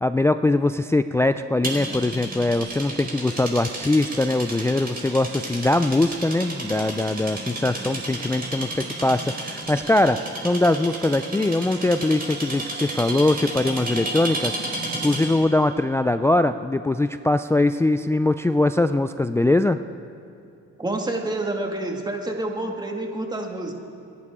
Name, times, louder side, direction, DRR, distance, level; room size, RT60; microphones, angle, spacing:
voice 1, 0.0-19.8, left 2 dB, 10° left, 10 dB, 0.3 m, -22 dB
sound 1, 1.6-15.4, right 2 dB, 30° right, 4.4 m, -32 dB
voice 2, 20.8-23.7, right 2 dB, 15° right, 2 dB, 2.0 m, -28 dB
29.0 x 11.0 x 3.7 m, 2.6 s
cardioid pair, 90°, 30 cm